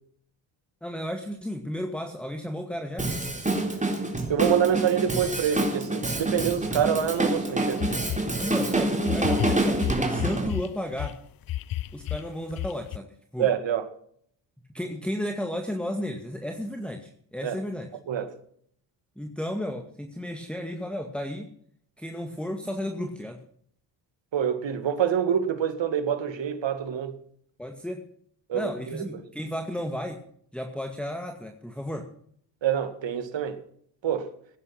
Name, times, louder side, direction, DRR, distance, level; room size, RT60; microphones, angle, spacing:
voice 1, 0.8-3.1 8.4-11.2 11.9-13.5 14.7-17.9 19.2-21.5 22.0-23.4 27.6-28.0 28.5-30.2 30.5-32.1, equal, ahead, 2.1 m, -33 dB
Drum kit, 3.0-10.5, right 2 dB, 15° right, 3.8 m, -27 dB
voice 2, 4.3-7.8 13.4-13.8 17.4-17.6 18.1-18.3 24.3-27.2 28.5-29.1 32.6-33.6 34.0-34.3, right 9 dB, 60° right, 2.3 m, -26 dB
sound 1, 7.2-7.3 7.8-8.3 9.0-11.1 11.5-13.0, left 14 dB, 45° left, 0.6 m, -31 dB
17.0 x 9.7 x 6.1 m
supercardioid pair, 60°, 49 cm